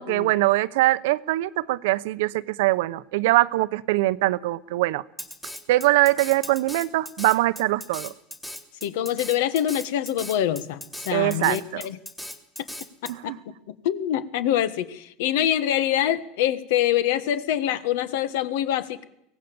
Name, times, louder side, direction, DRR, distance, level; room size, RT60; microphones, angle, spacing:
voice 1, 0.0-5.0 5.7-8.1 11.1-11.8 13.1-13.4, right 18 dB, 80° right, 15 dB, 0.8 m, -22 dB
Drum kit, 5.2-13.1, equal, 5° left, 1.9 m, -38 dB
voice 2, 8.8-12.0 13.0-13.3 13.7-19.0, left 11 dB, 75° left, 14 dB, 1.4 m, -25 dB
23.5 x 18.0 x 7.0 m, 0.80 s
cardioid pair, 165°, 0 cm